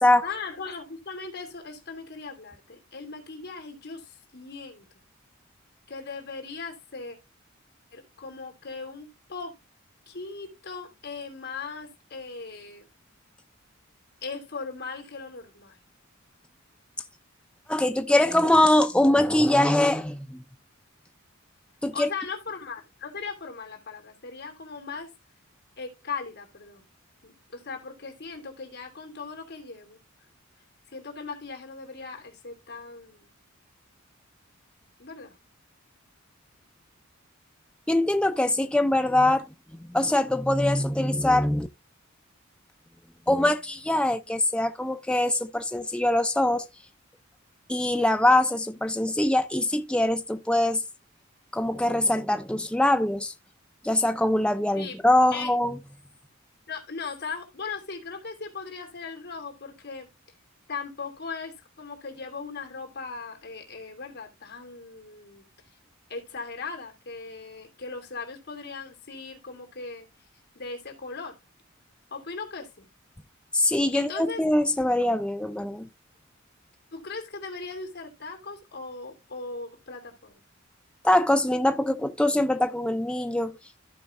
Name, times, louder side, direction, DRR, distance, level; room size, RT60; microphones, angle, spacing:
voice 1, 0.2-4.8 5.9-7.2 7.9-9.5 10.1-12.9 14.2-15.8 21.9-25.1 25.8-26.8 27.2-30.0 30.9-33.3 35.0-35.4 54.7-55.0 55.3-55.5 56.7-60.1 60.7-65.8 66.1-70.1 70.5-71.4 72.1-72.9 73.6-74.4 76.9-80.4, left 4 dB, 55° left, 2.8 m, -38 dB
voice 2, 17.7-20.4 21.8-22.1 37.9-39.5 39.8-41.7 43.3-46.6 47.7-50.8 51.5-53.3 53.8-55.8 73.5-75.9 81.0-83.5, left 1 dB, 5° left, 0.5 m, -23 dB
15.0 x 5.2 x 2.5 m
head